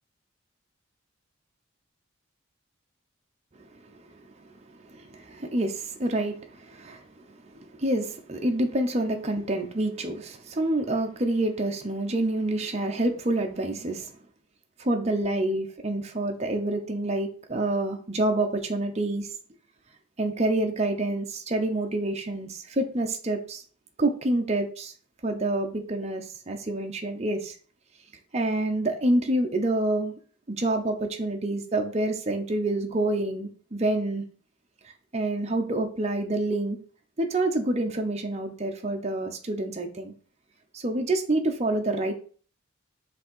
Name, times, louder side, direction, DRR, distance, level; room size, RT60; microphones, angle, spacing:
voice 1, 4.8-14.1 14.8-19.3 20.2-23.6 24.0-24.9 25.2-27.6 28.3-30.1 30.5-34.2 35.1-36.8 37.2-40.1 40.7-42.1, right 1 dB, 30° right, 4 dB, 0.7 m, -27 dB
5.2 x 3.4 x 5.4 m, 0.42 s
head